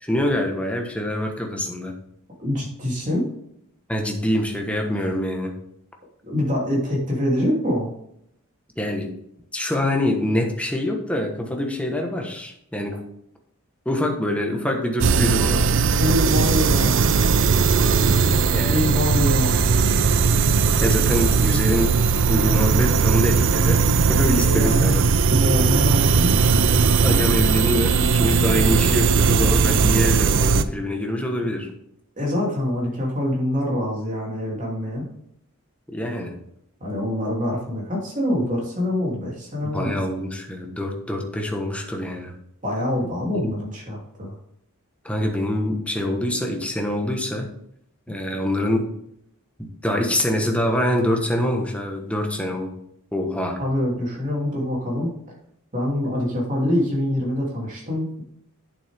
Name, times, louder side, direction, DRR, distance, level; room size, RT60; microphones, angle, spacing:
voice 1, 0.0-1.9 3.9-5.5 8.8-9.1 9.5-13.0 13.8-15.7 18.5-18.9 20.8-22.0 22.3-23.8 24.1-25.0 27.0-31.7 35.9-36.4 39.7-42.3 43.3-43.5 45.0-47.5 48.1-48.9 49.8-52.7 53.1-53.6, left 1 dB, 5° left, 2 dB, 1.3 m, -25 dB
voice 2, 2.4-3.3 6.2-7.9 16.0-17.3 18.7-19.8 24.4-27.3 32.2-35.0 36.8-40.0 42.6-44.4 53.6-55.1 55.7-58.2, left 1 dB, 35° right, -3 dB, 3.0 m, -25 dB
sound 1, 15.0-30.6, right 5 dB, 60° right, 0.5 m, -18 dB
8.8 x 7.2 x 3.6 m, 0.74 s
head